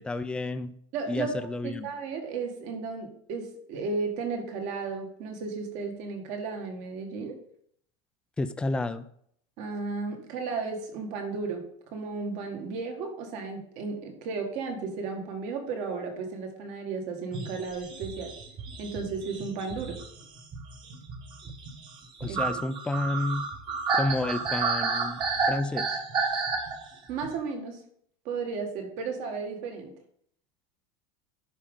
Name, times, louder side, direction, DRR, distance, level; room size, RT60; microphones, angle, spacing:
voice 1, 0.0-0.7 1.1-1.9 8.4-9.1 22.2-23.5 23.9-25.2 25.5-26.0, left 2 dB, 5° left, 11 dB, 0.3 m, -30 dB
voice 2, 0.9-1.3 1.6-7.3 9.6-11.6 11.9-18.3 18.8-20.0 22.3-22.6 27.1-27.8 28.3-29.9, right 4 dB, 50° right, 3 dB, 1.8 m, -34 dB
sound 1, 17.3-27.3, right 4 dB, 30° right, 1.3 m, -31 dB
11.5 x 5.0 x 3.8 m, 0.67 s
cardioid pair, 160°, 15 cm